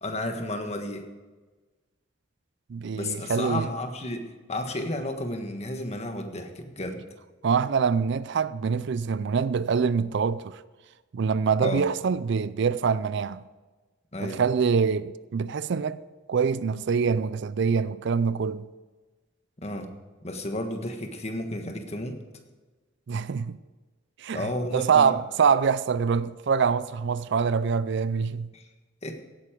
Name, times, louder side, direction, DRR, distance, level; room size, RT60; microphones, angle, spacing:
voice 1, 0.0-1.1 2.9-7.0 11.6-11.8 14.1-14.4 19.6-19.9 20.2-22.2 24.3-25.2 28.5-28.6 29.0-29.2, left 1 dB, 35° left, 1.5 m, -32 dB
voice 2, 2.7-3.7 7.4-10.6 11.1-13.4 14.2-16.0 16.3-18.7 23.1-23.6 24.2-28.5, right 6 dB, 60° right, 0.4 m, -25 dB
17.0 x 9.4 x 5.1 m
head